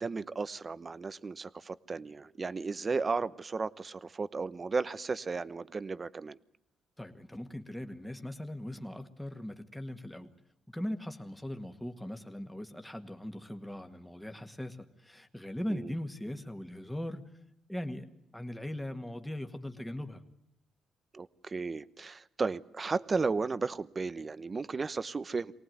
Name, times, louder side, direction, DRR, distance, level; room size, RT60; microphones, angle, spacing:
voice 1, 0.0-6.4 15.7-15.9 21.1-25.5, right 4 dB, 30° right, 16 dB, 0.9 m, -34 dB
voice 2, 7.0-10.3 10.7-17.2 17.7-18.1 18.3-20.2, left 1 dB, 5° left, 6 dB, 1.9 m, -39 dB
24.0 x 18.5 x 9.4 m, 0.80 s
cardioid pair, 90°, 0 cm